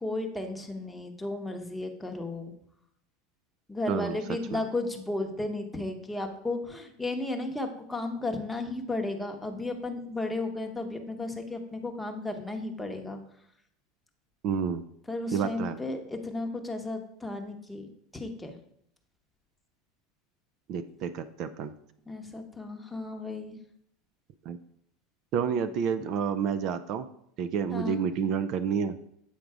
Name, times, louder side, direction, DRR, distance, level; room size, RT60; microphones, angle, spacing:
voice 1, 0.0-2.5 3.7-13.2 15.1-17.9 18.1-18.6 22.1-23.6 27.7-28.0, left 2 dB, 5° left, 3 dB, 0.9 m, -34 dB
voice 2, 3.9-4.6 14.4-14.8 15.3-15.8 20.7-21.7 24.5-24.6 25.3-27.1 27.4-29.0, right 7 dB, 50° right, 11 dB, 0.4 m, -29 dB
8.4 x 3.8 x 4.7 m, 0.72 s
supercardioid pair, 130°, 0 cm